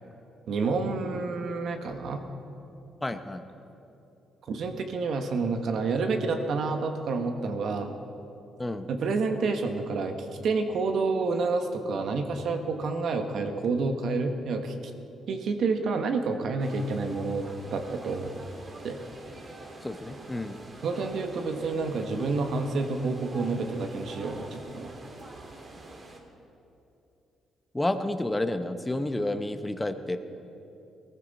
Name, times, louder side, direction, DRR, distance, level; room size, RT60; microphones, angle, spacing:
voice 1, 0.5-2.2 4.5-7.9 8.9-10.1 10.4-14.7 15.3-17.4 17.7-18.3 18.8-19.0 20.8-24.9, right 4 dB, 65° right, 6 dB, 1.4 m, -29 dB
voice 2, 3.0-3.4 8.6-8.9 19.8-20.6 27.7-30.2, left 1 dB, 10° left, 9 dB, 0.9 m, -30 dB
sound 1, 16.6-26.2, right 2 dB, 40° right, 2.0 m, -45 dB
18.5 x 14.5 x 4.2 m, 2.8 s
cardioid pair, 90°, 0 cm